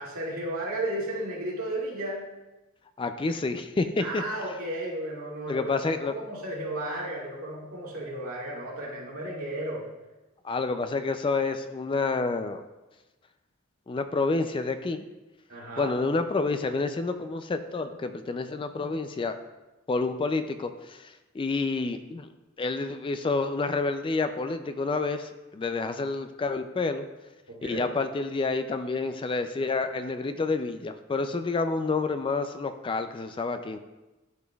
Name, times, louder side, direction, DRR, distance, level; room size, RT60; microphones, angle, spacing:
voice 1, 0.0-2.3 4.0-9.9 15.5-15.9 27.5-27.9, right 1 dB, 75° right, -5 dB, 2.2 m, -34 dB
voice 2, 3.0-4.2 5.5-6.1 10.4-12.6 13.9-15.1 15.8-19.4 19.9-22.3 22.6-27.1 27.6-33.8, left 3 dB, 25° left, 9 dB, 0.3 m, -29 dB
12.0 x 5.1 x 2.3 m, 1.1 s
head